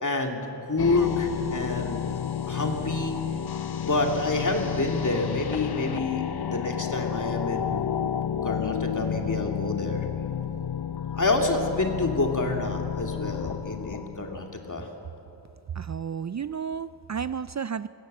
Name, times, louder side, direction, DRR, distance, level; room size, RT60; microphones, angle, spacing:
voice 1, 0.0-2.2 2.5-3.2 3.8-7.8 8.4-10.1 11.1-14.9, left 2 dB, 45° left, 2 dB, 2.5 m, -28 dB
sound 1, 0.8-14.9, left 8 dB, 65° left, 0.7 m, -31 dB
voice 2, 15.8-17.9, right 7 dB, 45° right, 15 dB, 0.4 m, -32 dB
20.5 x 16.5 x 7.8 m, 2.8 s
wide cardioid pair, 55°, 42 cm